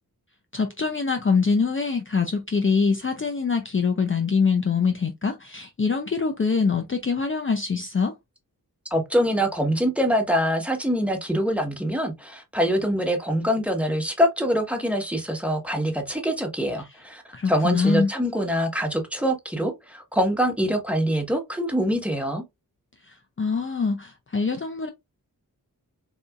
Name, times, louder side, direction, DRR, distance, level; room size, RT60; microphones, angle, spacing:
voice 1, 0.5-8.1 17.3-18.1 23.0-24.9, left 5 dB, 35° left, 0.6 m, -24 dB
voice 2, 8.9-22.4, equal, 5° right, 1.3 m, -24 dB
4.1 x 2.7 x 2.4 m
cardioid pair, 45°, 36 cm